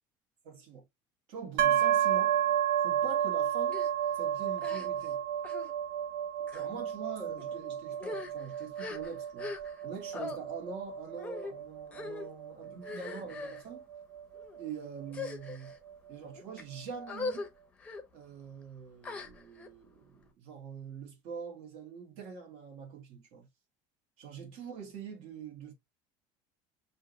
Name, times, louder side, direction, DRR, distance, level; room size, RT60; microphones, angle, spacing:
voice 1, 0.4-0.8 1.3-2.4 2.8-3.8 4.1-5.2 6.5-9.5 9.8-13.9 14.6-15.7 16.1-17.5 18.1-23.5 24.2-25.7, right 6 dB, 65° right, 2.0 m, -44 dB
sound 1, 1.6-15.3, right 10 dB, 90° right, 0.6 m, -32 dB
sound 2, 3.7-3.9 4.6-5.1 5.4-5.7 6.4-6.7 7.4-7.5 7.9-9.9 10.1-10.4 11.2-11.5 11.9-12.3 12.8-13.6 14.3-14.6 15.1-15.8 16.4-16.6 17.1-17.5 17.8-18.0 19.0-19.7, left 3 dB, 10° left, 0.7 m, -41 dB
6.2 x 2.8 x 3.0 m
cardioid pair, 165°, 10 cm